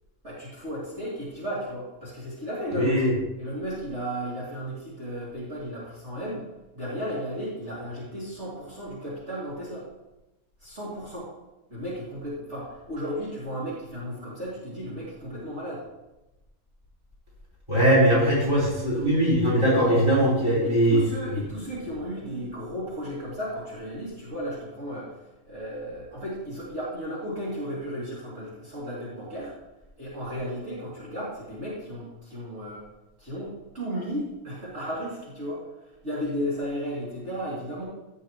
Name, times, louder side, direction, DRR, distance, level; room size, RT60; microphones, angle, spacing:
voice 1, 0.2-3.1 3.4-6.4 6.7-9.9 10.6-11.3 11.7-15.8 20.6-29.5 30.0-32.8 33.2-35.6 36.0-37.8, equal, 50° right, -9 dB, 3.1 m, -34 dB
voice 2, 2.7-3.1 17.7-21.0, equal, 20° right, -5 dB, 4.0 m, -21 dB
15.5 x 6.7 x 3.0 m, 0.99 s
omnidirectional pair, 1.5 m